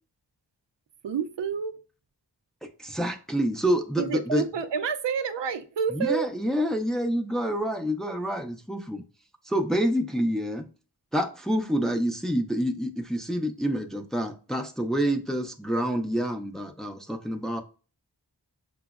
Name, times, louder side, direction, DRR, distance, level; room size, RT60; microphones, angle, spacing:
voice 1, 1.0-1.7 4.0-6.3 15.0-15.1, right 7 dB, 80° right, 0.5 m, -29 dB
voice 2, 2.8-4.4 5.9-9.0 9.5-10.6 11.1-17.6, equal, ahead, 0.5 m, -27 dB
5.9 x 2.0 x 2.3 m
wide cardioid pair, 60°, 42 cm